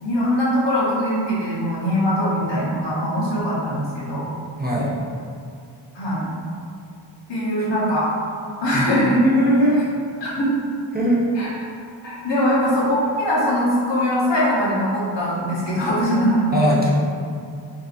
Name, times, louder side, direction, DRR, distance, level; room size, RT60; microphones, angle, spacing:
voice 1, 0.0-4.3 5.9-6.3 7.3-8.1 8.6-9.2 10.2-10.5 11.3-11.5 12.0-16.6, equal, 65° left, -7 dB, 1.0 m, -21 dB
voice 2, 4.6-4.9 7.6-7.7 9.2-9.8 10.9-11.3 16.5-16.9, equal, 20° right, -6 dB, 0.4 m, -19 dB
3.6 x 2.7 x 2.5 m, 2.3 s
wide cardioid pair, 70°, 48 cm